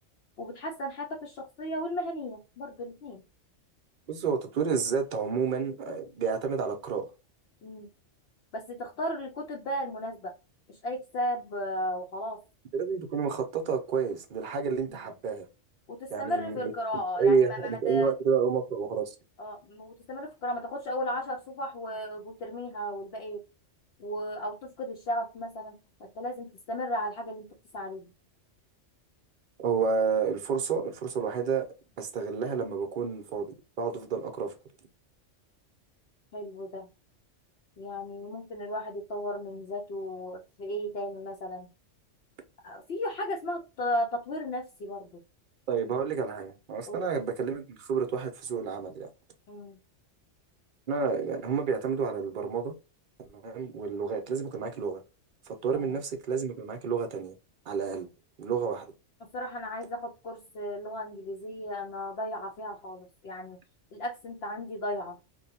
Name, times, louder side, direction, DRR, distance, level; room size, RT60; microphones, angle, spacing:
voice 1, 0.4-3.2 7.6-7.9 8.5-10.3 10.7-12.4 14.9-15.0 15.9-18.1 19.4-23.4 24.0-27.5 27.7-28.1 36.3-36.9 37.8-41.7 42.6-45.1 46.9-47.0 49.5-49.8 55.7-56.0 59.3-63.6 63.9-65.2, equal, 65° left, 0.8 m, -35 dB
voice 2, 4.1-7.1 12.7-15.5 16.1-16.7 17.2-19.1 29.6-31.6 32.0-34.5 45.7-49.1 50.9-52.7 53.2-55.0 55.6-57.3 57.7-58.1 58.4-58.9, right 5 dB, 50° right, 0.6 m, -29 dB
2.6 x 2.2 x 2.6 m
omnidirectional pair, 1.3 m